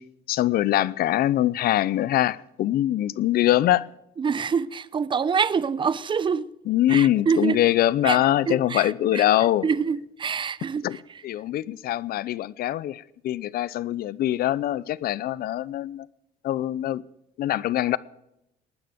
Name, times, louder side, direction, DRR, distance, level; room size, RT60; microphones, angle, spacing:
voice 1, 0.3-3.9 6.7-9.7 10.8-11.0 11.2-16.1 16.4-17.0 17.4-18.0, left 13 dB, 65° left, 0.7 m, -23 dB
voice 2, 4.2-6.5 6.9-7.6 8.0-8.2 8.5-9.3 9.6-11.2, right 6 dB, 30° right, 0.7 m, -26 dB
19.5 x 9.5 x 6.7 m
cardioid pair, 110°, 17 cm